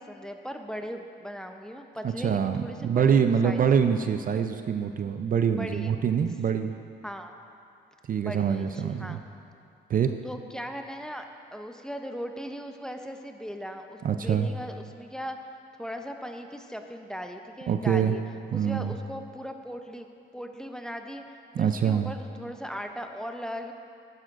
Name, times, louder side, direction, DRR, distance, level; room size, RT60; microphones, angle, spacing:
voice 1, 0.0-3.7 5.6-5.9 7.0-7.3 8.2-9.2 10.2-11.2 11.5-15.4 15.8-18.2 18.5-20.1 20.3-21.2 21.6-23.7, equal, 5° left, 5 dB, 0.6 m, -38 dB
voice 2, 2.0-6.7 8.1-9.2 9.9-10.1 14.0-14.5 17.7-18.2 18.5-18.9 21.6-22.1, right 7 dB, 45° right, 8 dB, 0.5 m, -25 dB
12.5 x 10.5 x 2.5 m, 2.4 s
cardioid pair, 90°, 20 cm